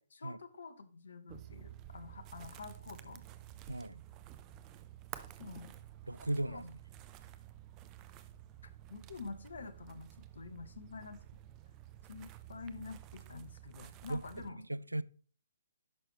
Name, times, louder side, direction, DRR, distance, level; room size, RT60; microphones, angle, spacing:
voice 1, 0.0-3.2 5.4-5.7 6.5-6.6 8.9-11.2 12.1-14.6, left 4 dB, 65° left, 1.1 m, -48 dB
sound 1, 1.3-14.5, right 13 dB, 25° right, 0.5 m, -52 dB
voice 2, 3.7-4.0 6.1-6.8 14.1-15.0, right 1 dB, 85° right, 0.3 m, -37 dB
10.5 x 6.1 x 3.1 m
figure-of-eight pair, 130°, 0 cm